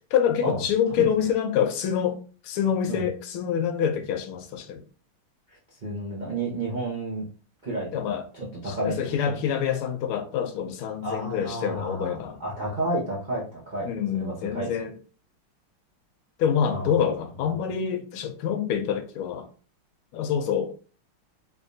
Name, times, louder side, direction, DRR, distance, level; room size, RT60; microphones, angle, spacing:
voice 1, 0.1-2.2 2.4-4.8 7.9-8.2 8.6-12.4 13.8-15.0 16.4-19.5 20.1-20.7, left 8 dB, 80° left, 1.5 m, -26 dB
voice 2, 5.5-7.2 7.6-9.0 9.2-9.4 11.0-13.9 14.1-14.7 16.7-17.1, right 2 dB, 60° right, 0.4 m, -31 dB
3.7 x 3.3 x 2.6 m
omnidirectional pair, 2.3 m